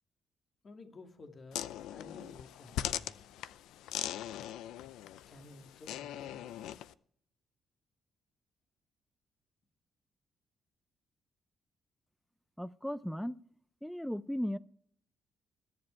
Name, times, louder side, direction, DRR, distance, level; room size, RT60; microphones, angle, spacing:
voice 1, 0.6-3.2 5.3-6.8, left 3 dB, 40° left, 2.5 m, -53 dB
sound 1, 1.5-6.9, left 12 dB, 90° left, 0.5 m, -40 dB
voice 2, 12.6-13.4 13.8-14.6, equal, 5° left, 0.6 m, -36 dB
21.0 x 7.8 x 4.5 m
cardioid pair, 90°, 0 cm